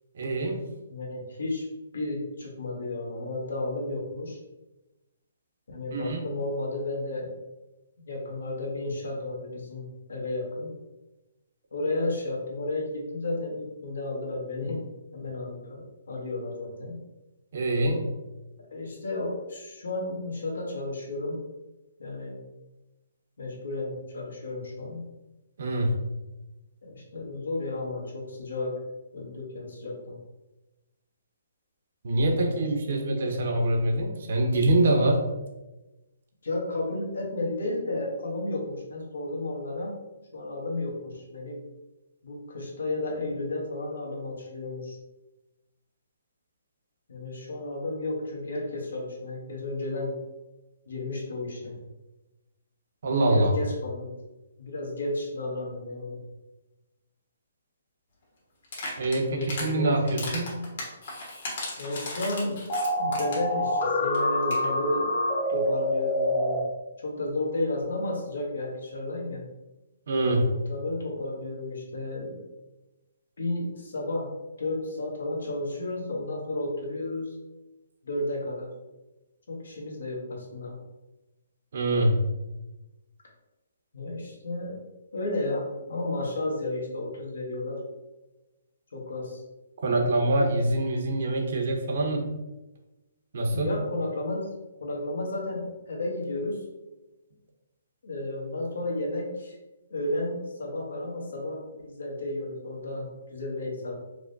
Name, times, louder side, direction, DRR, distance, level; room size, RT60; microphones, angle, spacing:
voice 1, 0.1-0.6 5.9-6.2 17.5-18.1 25.6-25.9 32.0-35.2 53.0-53.5 59.0-60.5 70.1-70.5 81.7-82.2 89.8-92.3 93.3-93.7, right 1 dB, 65° right, 3 dB, 0.7 m, -24 dB
voice 2, 0.9-1.6 1.9-4.4 5.7-7.3 8.1-10.7 11.7-14.8 15.1-17.0 18.7-21.4 22.0-22.4 23.4-25.0 26.8-28.8 29.1-30.2 32.4-33.0 36.4-39.9 40.3-41.6 42.2-45.0 47.1-50.1 50.9-51.8 53.2-54.1 54.6-56.2 59.4-60.1 61.8-62.6 63.0-65.1 65.5-66.6 67.0-69.4 70.5-72.4 73.4-74.3 74.6-77.3 78.0-78.7 79.5-80.8 83.9-84.8 85.1-87.8 88.9-89.4 93.5-94.5 94.8-96.6 98.0-99.5 99.9-104.0, left 2 dB, 80° left, -1 dB, 1.1 m, -32 dB
sound 1, 58.6-59.7 60.1-63.5 63.8-63.9 64.1-64.2 64.4-64.7, left 2 dB, 60° left, 1.3 m, -36 dB
sound 2, 62.7-66.6, left 1 dB, 40° left, 0.9 m, -26 dB
4.7 x 2.1 x 2.6 m, 1.0 s
hypercardioid pair, 150°, 0 cm